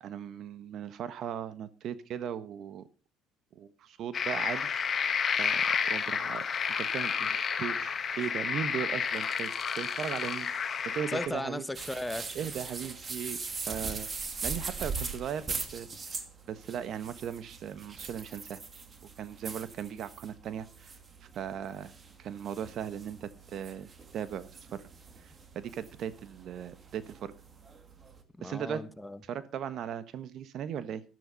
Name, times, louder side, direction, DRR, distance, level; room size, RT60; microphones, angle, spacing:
voice 1, 0.0-2.8 3.5-4.7 5.4-6.5 6.8-10.5 10.8-11.6 12.3-13.4 13.7-14.1 14.4-18.6 19.2-20.9 21.2-21.9 22.2-24.8 25.2-27.3 28.4-28.8 29.3-31.0, right 9 dB, 55° right, 1.3 m, -38 dB
sound 1, 4.1-11.3, left 6 dB, 35° left, 1.8 m, -31 dB
voice 2, 11.1-12.4 28.4-29.2, left 1 dB, 10° left, 1.3 m, -36 dB
sound 2, 11.7-28.2, right 4 dB, 30° right, 2.5 m, -41 dB
12.5 x 12.5 x 5.2 m
supercardioid pair, 100°, 0 cm